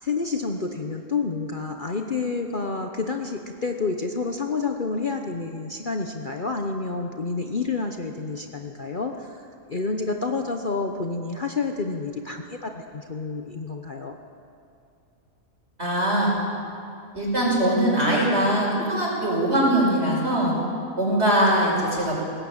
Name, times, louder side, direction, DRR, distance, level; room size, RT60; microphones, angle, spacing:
voice 1, 0.0-9.4 9.7-14.2, left 4 dB, 40° left, 4 dB, 1.1 m, -29 dB
voice 2, 15.8-16.3 17.1-20.5 21.0-22.2, right 1 dB, 45° right, -3 dB, 6.1 m, -21 dB
20.5 x 18.0 x 9.0 m, 2.6 s
omnidirectional pair, 1.5 m